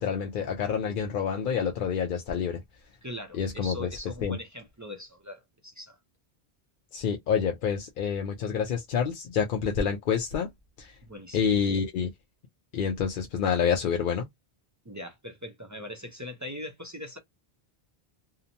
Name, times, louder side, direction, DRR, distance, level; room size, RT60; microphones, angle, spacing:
voice 1, 0.0-2.6 3.4-3.9 4.2-4.4 6.9-10.5 10.8-11.0 11.3-12.1 12.7-14.3, left 7 dB, 60° left, 0.6 m, -28 dB
voice 2, 3.0-6.0 11.0-11.5 14.8-17.2, left 1 dB, 30° right, 0.3 m, -41 dB
2.8 x 2.1 x 2.6 m
omnidirectional pair, 1.1 m